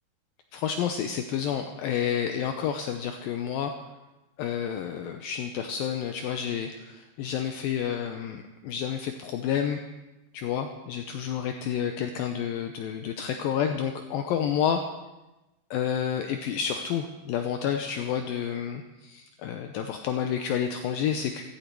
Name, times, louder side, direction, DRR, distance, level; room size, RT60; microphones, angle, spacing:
voice 1, 0.5-3.7 4.4-9.8 10.3-14.8 15.7-21.4, left 8 dB, 80° left, 6 dB, 2.3 m, -30 dB
15.5 x 15.5 x 4.6 m, 1.0 s
omnidirectional pair, 4.6 m